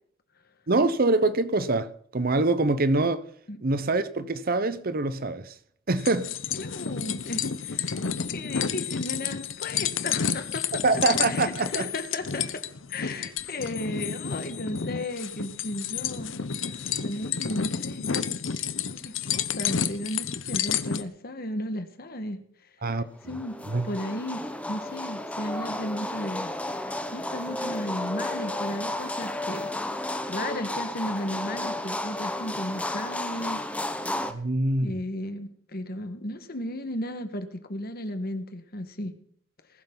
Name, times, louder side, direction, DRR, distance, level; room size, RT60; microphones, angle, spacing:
voice 1, 0.7-3.2 3.6-5.5 5.9-6.3 10.8-11.9 22.8-23.0 23.7-23.9 34.3-34.9, right 2 dB, 50° right, 0.9 m, -24 dB
sound 1, 6.0-21.0, left 7 dB, 75° left, 0.9 m, -30 dB
voice 2, 6.5-8.0 8.3-10.9 11.2-16.8 17.0-18.1 18.8-22.4 23.3-23.6 23.8-26.5 27.1-33.9 34.8-39.1, left 1 dB, 50° left, 1.6 m, -35 dB
sound 2, 23.2-34.3, left 1 dB, 5° left, 1.0 m, -32 dB
20.5 x 11.5 x 4.0 m
head